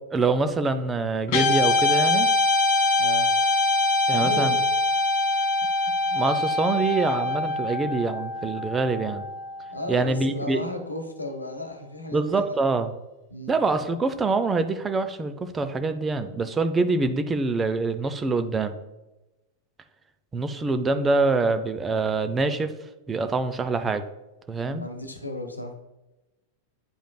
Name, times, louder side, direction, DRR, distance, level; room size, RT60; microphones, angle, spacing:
voice 1, 0.1-2.3 4.1-4.6 6.1-9.3 9.9-10.6 12.1-12.9 13.5-18.7 20.3-22.7 23.1-24.0 24.5-24.8, right 3 dB, 15° right, 9 dB, 0.4 m, -25 dB
Guitar, 1.3-9.8, left 2 dB, 45° left, 1.1 m, -23 dB
voice 2, 3.0-3.3 4.1-4.6 9.7-12.4 13.3-13.5 24.6-25.7, left 1 dB, 85° left, 5 dB, 0.8 m, -34 dB
8.6 x 5.1 x 2.2 m, 0.99 s
figure-of-eight pair, 90°, 0 cm